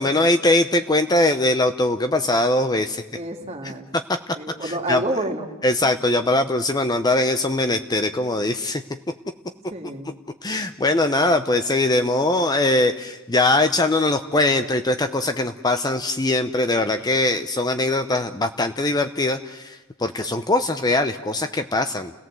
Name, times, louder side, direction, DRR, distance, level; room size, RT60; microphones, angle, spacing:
voice 1, 0.0-3.0 3.6-3.7 4.1-4.2 4.6-5.0 5.6-8.8 10.4-22.1, left 2 dB, 20° left, 8 dB, 0.7 m, -21 dB
voice 2, 3.1-3.9 4.4-5.5 5.8-5.9 9.7-10.1, right 1 dB, 30° right, 2 dB, 2.6 m, -29 dB
30.0 x 17.5 x 7.7 m, 1.1 s
head